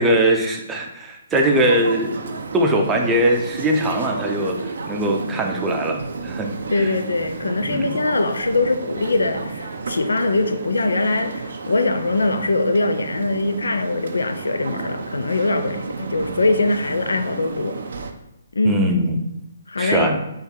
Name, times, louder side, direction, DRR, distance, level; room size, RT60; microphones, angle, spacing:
voice 1, 0.0-4.6 4.9-6.5 6.8-6.9 7.6-7.9 18.6-19.2 19.8-20.2, right 1 dB, 15° right, 0.6 m, -21 dB
sound 1, 1.3-18.1, right 4 dB, 60° right, 0.5 m, -32 dB
voice 2, 6.7-17.8 18.5-18.8 19.7-20.1, left 2 dB, 75° left, 0.5 m, -22 dB
3.6 x 3.1 x 4.4 m
figure-of-eight pair, 135°, 0 cm